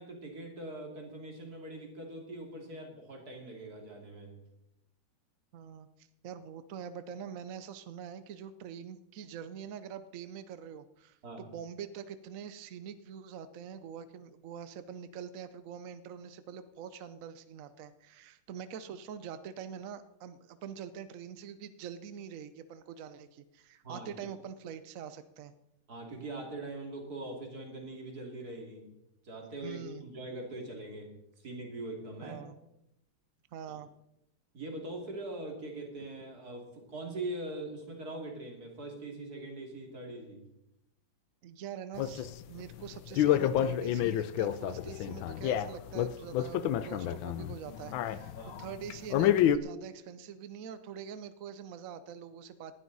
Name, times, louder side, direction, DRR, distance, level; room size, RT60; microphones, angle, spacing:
voice 1, 0.0-4.3 11.2-11.4 23.8-24.1 25.9-28.9 29.2-32.4 34.5-40.4 48.3-48.6, right 2 dB, 50° right, 1 dB, 3.2 m, -42 dB
voice 2, 5.5-25.5 29.6-30.0 32.2-32.6 33.5-33.9 41.4-52.7, right 8 dB, 70° right, 12 dB, 0.8 m, -45 dB
sound 1, 42.0-49.6, left 11 dB, 80° left, 1.4 m, -29 dB
19.0 x 12.0 x 4.1 m, 0.85 s
omnidirectional pair, 2.2 m